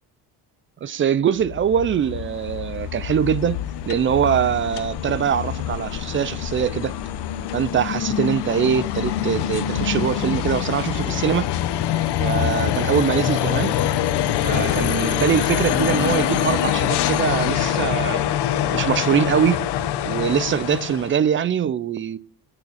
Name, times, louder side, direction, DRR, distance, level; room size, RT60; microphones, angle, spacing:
voice 1, 0.8-6.9 7.5-11.6 12.2-13.7 14.4-18.3 18.7-19.7 20.0-22.2, right 8 dB, 30° right, 0.4 m, -23 dB
sound 1, 1.4-21.2, left 11 dB, 80° left, 0.8 m, -24 dB
8.9 x 8.2 x 4.0 m
cardioid pair, 125°, 40 cm